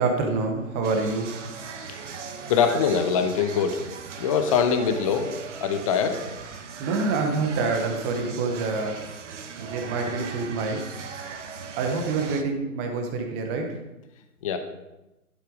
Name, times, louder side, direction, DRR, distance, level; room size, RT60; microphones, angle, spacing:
voice 1, 0.0-1.3 6.8-9.1 9.6-10.8 11.8-13.7, right 4 dB, 10° right, 3 dB, 0.6 m, -26 dB
sound 1, 0.8-12.4, right 6 dB, 55° right, 1.4 m, -38 dB
voice 2, 2.5-3.8 4.2-6.2 6.5-6.6 14.4-14.6, left 6 dB, 25° left, 7 dB, 0.7 m, -23 dB
12.0 x 7.5 x 5.1 m, 0.98 s
hypercardioid pair, 145°, 44 cm